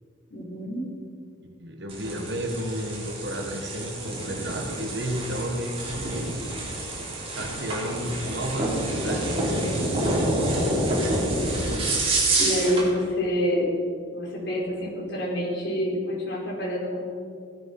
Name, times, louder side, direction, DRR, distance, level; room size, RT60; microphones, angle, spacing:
voice 1, 0.3-0.8 2.1-2.2 12.4-13.7 14.1-17.0, equal, 60° left, -4 dB, 4.9 m, -27 dB
voice 2, 1.4-6.3 7.3-9.8 12.8-12.9, equal, 55° right, 3 dB, 1.6 m, -32 dB
sound 1, 1.9-12.9, right 1 dB, 30° right, 3.9 m, -27 dB
17.0 x 12.5 x 5.6 m, 2.3 s
head